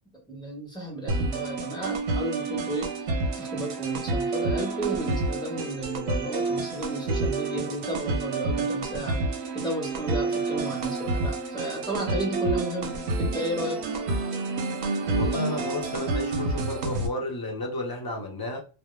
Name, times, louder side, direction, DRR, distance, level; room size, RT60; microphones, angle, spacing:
voice 1, 0.3-3.1 3.4-9.2 9.5-13.8, right 1 dB, 5° left, 0.7 m, -33 dB
sound 1, 1.1-17.1, right 3 dB, 85° right, 0.9 m, -29 dB
voice 2, 15.1-18.6, left 1 dB, 35° left, 0.3 m, -32 dB
2.1 x 2.0 x 3.0 m
omnidirectional pair, 1.1 m